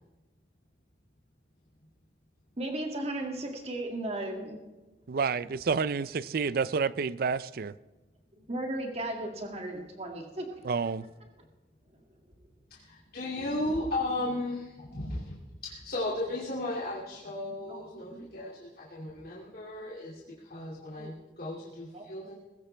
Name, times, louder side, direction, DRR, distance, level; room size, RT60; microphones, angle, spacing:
voice 1, 2.6-4.6 8.5-10.5 17.7-17.8 18.1-18.3 21.0-21.1 21.9-22.4, right 1 dB, 35° right, 2 dB, 2.2 m, -36 dB
voice 2, 5.1-7.7 10.6-11.0, right 5 dB, 55° right, 17 dB, 0.4 m, -29 dB
voice 3, 12.7-22.4, left 1 dB, 55° left, -5 dB, 2.4 m, -35 dB
20.0 x 15.5 x 3.4 m, 1.1 s
head